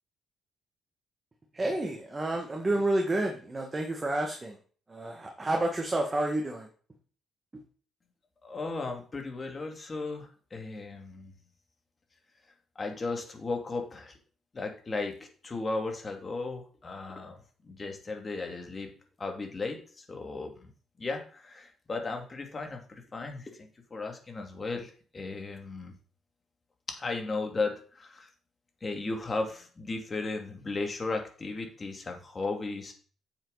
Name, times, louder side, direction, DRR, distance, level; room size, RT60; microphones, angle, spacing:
voice 1, 1.5-4.6 4.9-6.7 7.5-7.6, right 1 dB, 25° right, 2 dB, 1.9 m, -30 dB
voice 2, 8.4-11.3 12.8-14.1 14.5-15.1 15.4-18.9 19.2-20.7 21.0-25.9 26.9-28.3 28.8-32.9, left 3 dB, 30° left, 3 dB, 2.6 m, -35 dB
9.2 x 7.3 x 4.2 m, 0.42 s
cardioid pair, 90°, 0 cm